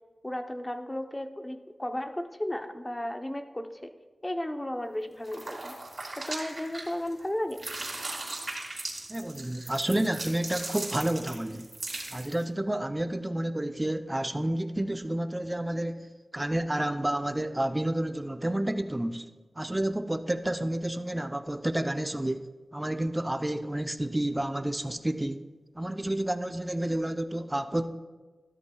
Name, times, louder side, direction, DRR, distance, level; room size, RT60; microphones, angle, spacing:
voice 1, 0.2-3.9 4.2-5.7 6.2-7.6, left 1 dB, 20° left, 7 dB, 0.8 m, -34 dB
sound 1, 5.2-7.2 7.5-12.4, right 2 dB, 55° right, 2.6 m, -38 dB
voice 2, 9.1-11.7 12.1-19.2 19.6-22.4 22.7-25.4 25.7-27.9, right 1 dB, 20° right, 9 dB, 0.6 m, -30 dB
13.5 x 12.5 x 2.3 m, 1.3 s
cardioid pair, 55°, 0 cm